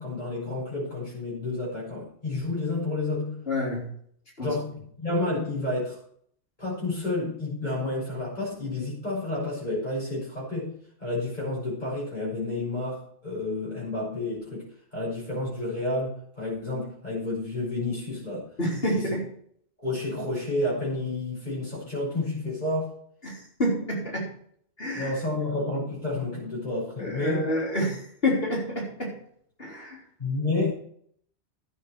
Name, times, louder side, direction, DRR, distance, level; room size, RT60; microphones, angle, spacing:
voice 1, 0.0-3.5 4.4-6.0 6.6-18.5 18.9-19.1 19.8-22.9 24.9-27.5 30.2-30.7, left 2 dB, 40° left, -6 dB, 7.0 m, -30 dB
voice 2, 3.5-3.9 4.4-4.5 18.6-19.2 23.2-24.3 24.8-25.1 27.0-29.1 29.6-30.0, left 1 dB, 60° left, -3 dB, 4.1 m, -28 dB
13.0 x 8.9 x 4.7 m, 0.63 s
omnidirectional pair, 1.1 m